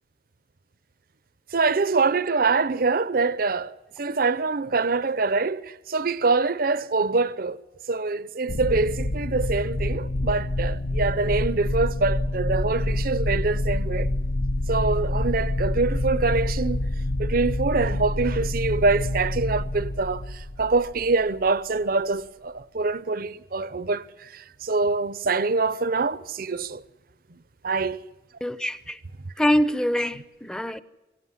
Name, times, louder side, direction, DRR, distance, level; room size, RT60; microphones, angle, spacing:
voice 1, 1.5-7.6 7.9-14.1 14.7-16.8 17.2-26.8 27.6-28.0, right 3 dB, 55° right, 0.7 m, -25 dB
sound 1, 8.5-21.5, left 1 dB, 75° left, 0.9 m, -27 dB
voice 2, 28.4-29.0 29.4-30.8, equal, 5° left, 0.8 m, -24 dB
24.0 x 17.0 x 9.7 m
head